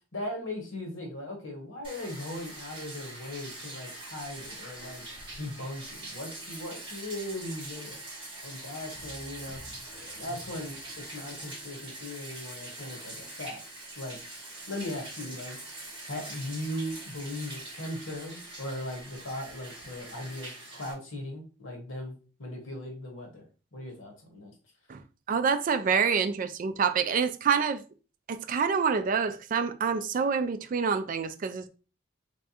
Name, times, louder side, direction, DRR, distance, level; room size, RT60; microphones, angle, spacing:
voice 1, 0.1-5.1 5.4-8.0 8.4-9.6 9.9-13.6 14.0-14.2 14.7-15.6 16.1-23.4 23.7-24.5, left 1 dB, 85° left, 1.3 m, -38 dB
Bathtub (filling or washing), 1.8-20.9, right 2 dB, 25° right, 1.5 m, -43 dB
voice 2, 25.3-27.8 28.3-31.7, right 6 dB, 45° right, 0.3 m, -27 dB
3.4 x 3.2 x 2.8 m
head